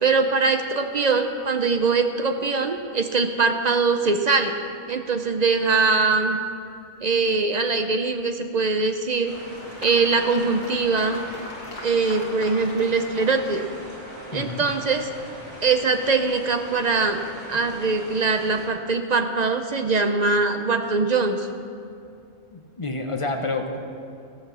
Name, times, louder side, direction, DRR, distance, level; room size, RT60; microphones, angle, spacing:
voice 1, 0.0-4.5 4.9-6.4 7.0-9.3 9.8-11.2 11.8-13.7 14.3-15.1 15.6-17.2 17.5-21.5, right 4 dB, 55° right, 6 dB, 0.5 m, -22 dB
Applause, 8.8-14.1, left 2 dB, 70° left, 2.0 m, -41 dB
sound 1, 9.2-18.7, right 1 dB, 70° right, 3.5 m, -41 dB
voice 2, 14.3-14.6 22.5-24.0, left 2 dB, 30° left, 4 dB, 0.7 m, -29 dB
16.5 x 5.9 x 6.9 m, 2.5 s
omnidirectional pair, 1.4 m